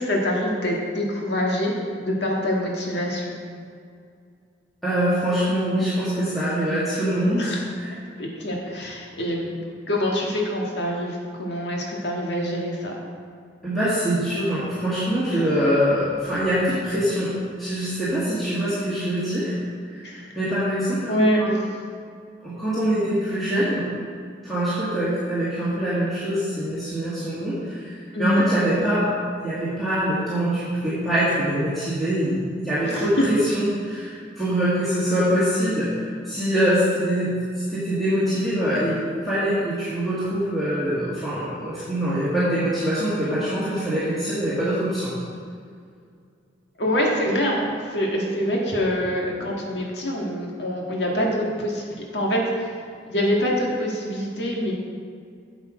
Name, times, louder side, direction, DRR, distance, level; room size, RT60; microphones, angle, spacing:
voice 1, 0.0-3.3 7.3-7.6 8.2-9.5 9.9-12.9 15.3-15.4 20.0-20.3 21.1-21.6 28.1-28.4 32.8-33.1 46.8-52.7 53.1-54.7, equal, 65° left, -2 dB, 1.7 m, -25 dB
voice 2, 4.8-7.5 7.8-7.9 13.6-17.3 17.6-19.5 19.9-20.1 20.4-21.1 21.4-21.5 22.4-23.9 24.4-29.1 29.4-37.3 37.7-45.1, equal, ahead, -13 dB, 1.8 m, -24 dB
8.2 x 7.3 x 5.0 m, 2.2 s
head